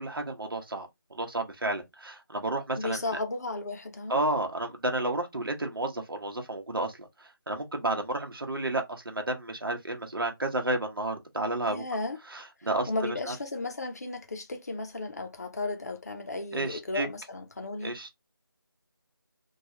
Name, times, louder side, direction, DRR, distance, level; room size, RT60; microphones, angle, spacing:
voice 1, 0.0-3.2 4.1-11.8 12.3-13.4 16.5-17.1 17.8-18.1, right 2 dB, 65° right, 0.9 m, -31 dB
voice 2, 2.8-4.2 11.6-12.2 12.9-18.0, left 2 dB, 40° left, 0.6 m, -34 dB
3.1 x 2.3 x 2.8 m
figure-of-eight pair, 165°, 13 cm